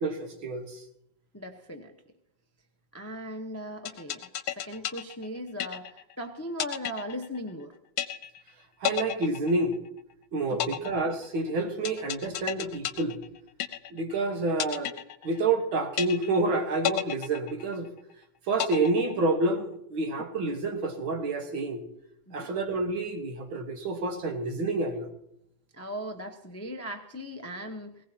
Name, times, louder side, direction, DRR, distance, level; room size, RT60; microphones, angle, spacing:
voice 1, 0.0-0.8 8.8-9.8 10.3-13.2 13.9-14.9 15.2-17.9 18.5-21.8 22.3-25.1, right 2 dB, 80° right, 5 dB, 2.2 m, -28 dB
voice 2, 1.3-1.9 2.9-7.7 10.5-10.9 22.3-22.5 25.7-28.0, equal, 15° left, 5 dB, 0.4 m, -38 dB
sound 1, 3.9-6.2 6.6-7.6 8.0-8.5 8.8-10.1 10.6-14.2 14.6-15.6 16.0-16.5 16.8-18.1 18.6-19.6, left 11 dB, 80° left, 1.5 m, -33 dB
19.5 x 18.0 x 2.8 m, 0.76 s
omnidirectional pair, 2.2 m